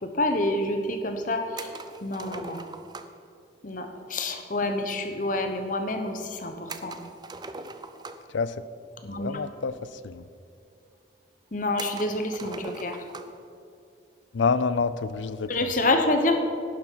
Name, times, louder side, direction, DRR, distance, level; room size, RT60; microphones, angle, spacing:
voice 1, 0.0-1.7 2.0-2.6 3.6-7.0 9.0-9.4 11.5-13.0 15.5-16.4, left 2 dB, 45° left, 6 dB, 0.9 m, -27 dB
sound 1, 1.6-3.3 6.7-8.4 9.5-9.6 9.8-9.9 10.7-10.8 11.8-13.4, right 3 dB, 20° right, 0.4 m, -41 dB
voice 2, 9.1-9.8 10.0-10.2 14.3-15.5, left 4 dB, 80° left, 15 dB, 0.4 m, -27 dB
11.0 x 10.5 x 4.6 m, 2.5 s
head